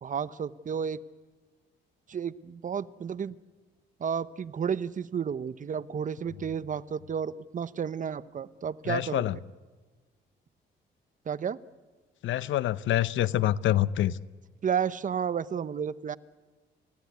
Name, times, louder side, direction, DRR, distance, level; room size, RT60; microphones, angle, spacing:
voice 1, 0.0-1.0 2.1-3.4 4.0-9.4 11.3-11.6 14.6-16.2, right 7 dB, 40° right, 16 dB, 0.8 m, -32 dB
voice 2, 8.9-9.4 12.2-14.2, left 13 dB, 75° left, 17 dB, 0.8 m, -26 dB
29.0 x 15.5 x 9.5 m, 1.3 s
cardioid pair, 90°, 20 cm